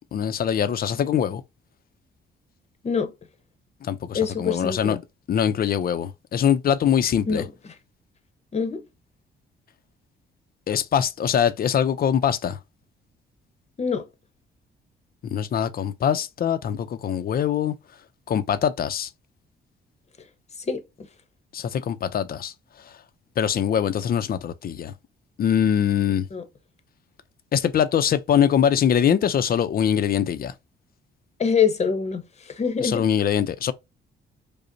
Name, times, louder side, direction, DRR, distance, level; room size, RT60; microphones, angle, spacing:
voice 1, 0.1-1.4 3.8-5.0 5.3-7.4 10.7-12.6 15.2-17.7 18.3-19.1 21.5-22.5 23.4-24.9 25.4-26.2 27.5-30.5 32.8-33.7, left 8 dB, 50° left, 0.5 m, -23 dB
voice 2, 4.1-5.0 7.3-7.5 8.5-8.8 13.8-14.1 20.7-20.8 26.3-26.4 31.4-33.1, left 6 dB, 35° left, 0.9 m, -24 dB
5.0 x 2.1 x 2.6 m
cardioid pair, 90°, 20 cm